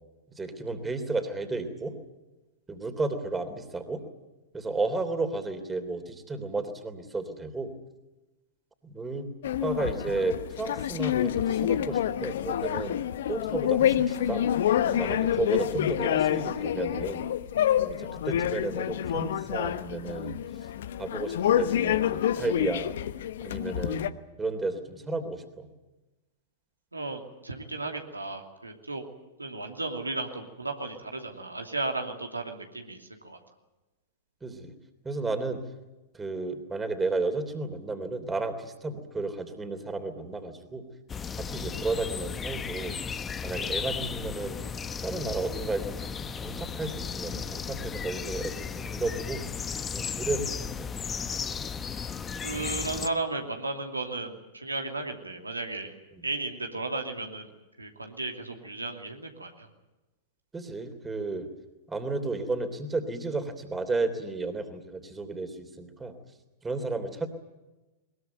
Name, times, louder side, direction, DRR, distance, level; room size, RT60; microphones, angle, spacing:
voice 1, 0.3-1.9 2.7-4.0 4.5-7.7 8.8-9.3 9.6-13.0 13.3-14.5 14.9-17.3 17.8-20.4 21.0-22.9 23.4-25.7 34.4-34.7 35.0-35.6 36.1-40.8 41.4-43.0 43.4-44.6 45.0-49.4 49.9-50.9 56.1-56.3 60.5-61.5 61.9-66.1 66.6-67.3, right 3 dB, 15° right, 8 dB, 3.2 m, -33 dB
sound 1, 9.4-24.1, left 10 dB, 60° left, 1.0 m, -27 dB
voice 2, 26.9-29.0 29.4-33.4 52.4-55.9 56.2-57.5 57.8-59.7, right 2 dB, 85° right, 3 dB, 2.8 m, -34 dB
sound 2, 41.1-53.1, left 6 dB, 20° left, 1.2 m, -35 dB
21.5 x 21.5 x 9.2 m, 1.1 s
figure-of-eight pair, 95°, 0 cm